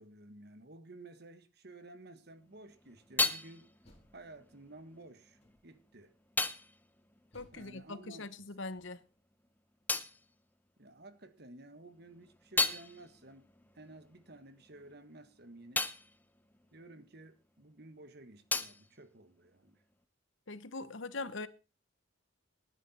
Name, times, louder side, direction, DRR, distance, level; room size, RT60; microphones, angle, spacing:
voice 1, 0.0-3.7 4.1-6.1 7.5-8.3 10.8-13.4 13.7-15.9 16.7-19.8, right 2 dB, 50° right, 1.5 m, -53 dB
sound 1, 2.3-8.4 8.6-11.3 11.7-17.8 18.0-20.0, left 3 dB, 10° left, 0.7 m, -39 dB
Door, 3.8-4.8 5.4-6.0 7.3-9.2, equal, 30° left, 3.8 m, -65 dB
voice 2, 7.3-9.0 20.5-21.5, left 3 dB, 65° left, 1.0 m, -42 dB
18.5 x 10.0 x 4.3 m
head